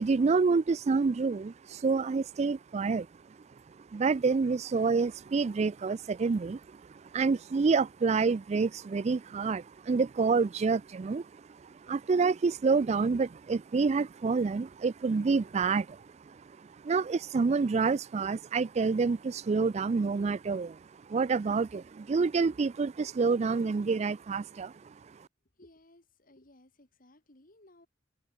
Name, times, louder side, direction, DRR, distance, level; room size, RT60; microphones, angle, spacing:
voice 1, 0.0-3.1 3.9-6.6 7.1-11.2 11.9-16.0 16.8-20.8 21.1-24.7, right 4 dB, 35° right, 0.3 m, -27 dB
voice 2, 25.5-27.9, left 1 dB, 50° left, 3.0 m, -59 dB
head